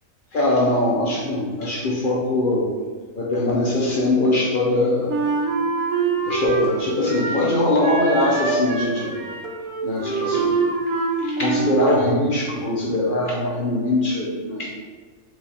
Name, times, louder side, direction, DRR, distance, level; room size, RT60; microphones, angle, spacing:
voice 1, 0.3-2.7 3.2-5.1 6.2-9.2 9.8-10.6 11.2-14.7, left 1 dB, 50° left, -3 dB, 0.6 m, -21 dB
Wind instrument woodwind instrument, 5.1-7.5 7.8-11.9, right 4 dB, 70° right, 1.0 m, -25 dB
4.5 x 2.4 x 4.0 m, 1.4 s
omnidirectional pair, 1.6 m